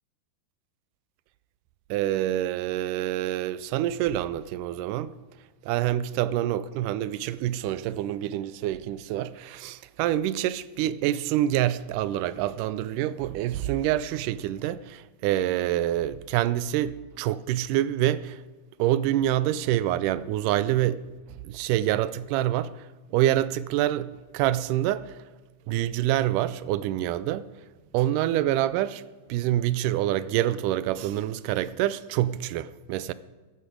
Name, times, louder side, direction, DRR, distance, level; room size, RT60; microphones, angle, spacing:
voice 1, 1.9-5.1 5.6-18.4 18.8-21.0 21.4-25.2 25.7-27.5 27.9-29.0 29.3-33.1, right 13 dB, 85° right, 2.1 m, -26 dB
15.0 x 11.0 x 5.0 m
omnidirectional pair, 3.7 m